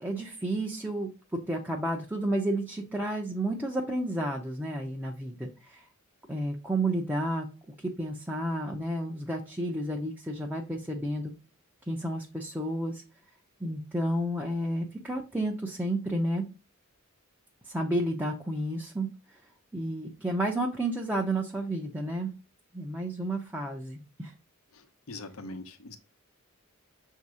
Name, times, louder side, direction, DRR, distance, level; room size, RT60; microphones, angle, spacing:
voice 1, 0.0-1.1 1.5-5.8 6.3-7.5 7.8-11.3 11.9-13.0 13.6-16.4 17.7-19.1 19.7-22.3 22.7-24.3, right 1 dB, 10° right, 0 dB, 0.6 m, -31 dB
voice 2, 24.7-26.0, left 2 dB, 90° left, 8 dB, 0.9 m, -42 dB
7.0 x 2.8 x 4.8 m, 0.32 s
head